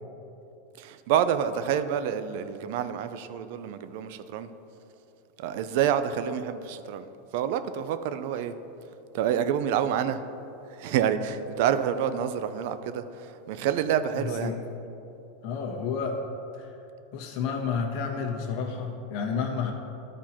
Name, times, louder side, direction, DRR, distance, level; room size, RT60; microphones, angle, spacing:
voice 1, 0.8-4.5 5.4-7.1 7.3-8.5 9.1-10.2 10.7-14.5, right 9 dB, 60° right, 11 dB, 0.5 m, -28 dB
voice 2, 14.2-14.5 15.4-16.2 16.6-16.7 17.1-19.7, left 6 dB, 55° left, 1 dB, 1.3 m, -30 dB
13.0 x 4.5 x 4.3 m, 2.9 s
supercardioid pair, 145°, 0 cm